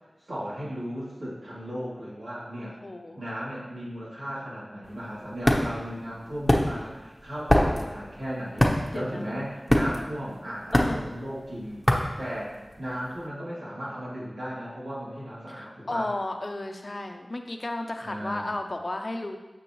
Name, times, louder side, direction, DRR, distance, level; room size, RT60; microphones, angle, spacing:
voice 1, 0.2-2.7 3.1-11.8 12.2-16.1 18.0-18.5, equal, 80° right, -8 dB, 2.9 m, -36 dB
voice 2, 2.8-3.2 8.9-9.3 10.7-11.1 15.5-19.4, left 2 dB, 55° left, 5 dB, 0.8 m, -33 dB
sound 1, 4.8-13.0, left 1 dB, 20° left, 1.0 m, -25 dB
9.7 x 6.2 x 3.1 m, 1.1 s
wide cardioid pair, 45°, 0 cm